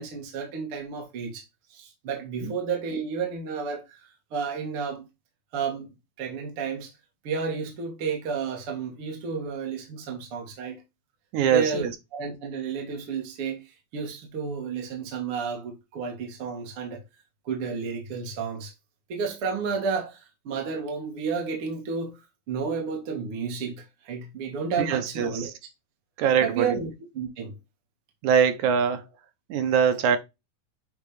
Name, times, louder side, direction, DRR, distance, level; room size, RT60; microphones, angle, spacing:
voice 1, 0.0-1.4 1.7-4.0 4.3-5.0 5.5-5.9 6.2-6.9 7.2-10.8 11.5-17.0 17.5-18.7 19.1-22.2 22.5-25.5 26.4-27.5, right 5 dB, 50° right, 2.4 m, -31 dB
voice 2, 11.3-11.9 24.8-25.5 26.2-26.8 28.2-29.0 29.5-30.2, right 7 dB, 75° right, 2.3 m, -23 dB
8.7 x 3.8 x 3.3 m
omnidirectional pair, 3.5 m